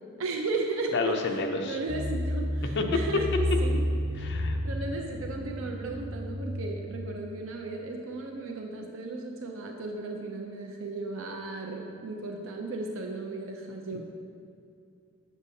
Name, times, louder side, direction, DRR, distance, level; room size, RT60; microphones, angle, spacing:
voice 1, 0.2-1.2 1.6-3.7 4.6-14.0, right 3 dB, 70° right, 2 dB, 0.5 m, -35 dB
voice 2, 0.9-1.8 2.8-2.9 4.2-4.6 13.9-14.0, left 3 dB, 55° left, 3 dB, 0.6 m, -30 dB
sound 1, 1.9-6.9, left 1 dB, 85° right, 1.4 m, -31 dB
7.2 x 6.5 x 2.7 m, 2.5 s
head